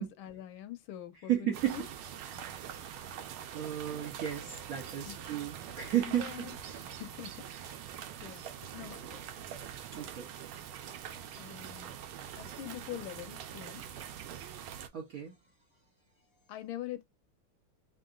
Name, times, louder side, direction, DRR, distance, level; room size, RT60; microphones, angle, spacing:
voice 1, 0.0-1.8 5.0-5.2 6.0-7.4 7.7-7.9 8.2-9.3 11.4-11.9 12.4-13.8 16.5-17.0, left 12 dB, 75° left, 1.3 m, -44 dB
voice 2, 1.3-1.8 2.5-3.2 3.5-6.3 9.9-10.3 14.9-15.3, right 12 dB, 60° right, 0.9 m, -34 dB
sound 1, 1.5-14.9, right 9 dB, 80° right, 1.5 m, -44 dB
4.0 x 3.7 x 2.4 m
omnidirectional pair, 2.4 m